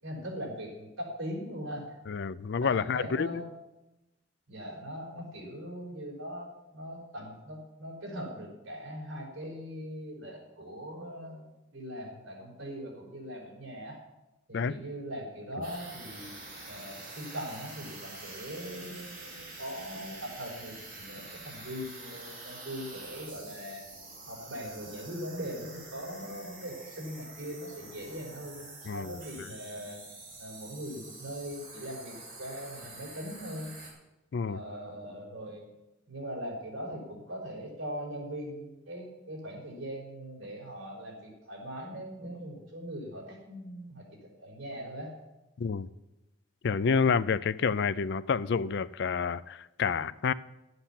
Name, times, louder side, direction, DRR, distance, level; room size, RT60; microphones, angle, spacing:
voice 1, 0.0-1.9 2.6-3.5 4.5-14.0 14.5-16.3 16.7-23.8 24.3-30.0 30.4-33.7 34.5-35.7 36.1-44.0 44.4-45.1, equal, 80° right, 4.3 m, -40 dB
voice 2, 2.1-3.4 14.5-14.8 28.9-29.5 34.3-34.6 45.6-45.9 46.6-50.3, left 5 dB, 60° left, 0.4 m, -29 dB
sound 1, 15.6-33.9, right 2 dB, 50° right, 4.5 m, -47 dB
11.5 x 7.9 x 7.2 m
head